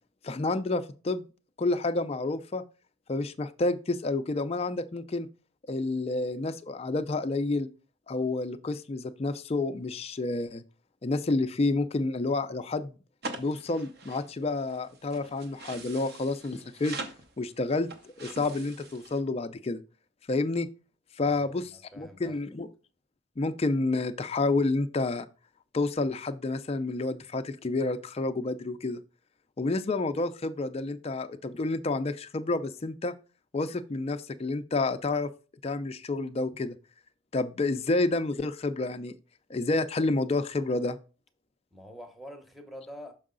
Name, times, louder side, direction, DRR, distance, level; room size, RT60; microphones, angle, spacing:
voice 1, 0.2-1.2 1.6-2.6 3.1-5.3 5.7-7.7 8.1-10.6 11.0-12.9 13.4-17.0 17.4-17.9 18.2-19.8 20.3-20.7 21.2-21.6 22.0-22.7 23.4-25.3 25.7-29.0 29.6-33.1 33.5-35.3 35.6-36.8 37.3-39.1 39.5-41.0, left 2 dB, 30° left, 0.4 m, -29 dB
sound 1, 13.2-19.2, right 3 dB, 50° right, 0.8 m, -43 dB
voice 2, 21.2-21.5 21.9-22.4 41.7-43.1, equal, ahead, 0.8 m, -45 dB
6.3 x 4.7 x 3.7 m
head